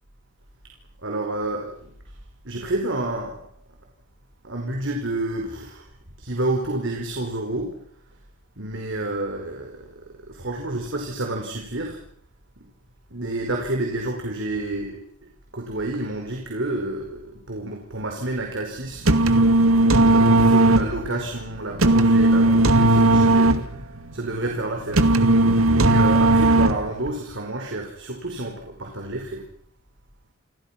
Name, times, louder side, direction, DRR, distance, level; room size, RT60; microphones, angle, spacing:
voice 1, 1.0-1.9 2.4-3.5 4.4-5.9 6.2-7.8 8.6-12.0 12.6-12.7 13.1-19.3 19.9-25.1 25.6-29.5, right 2 dB, 60° right, 2 dB, 4.8 m, -29 dB
sound 1, 18.8-27.1, right 2 dB, 80° right, 2.2 m, -17 dB
29.5 x 26.0 x 6.0 m, 0.63 s
head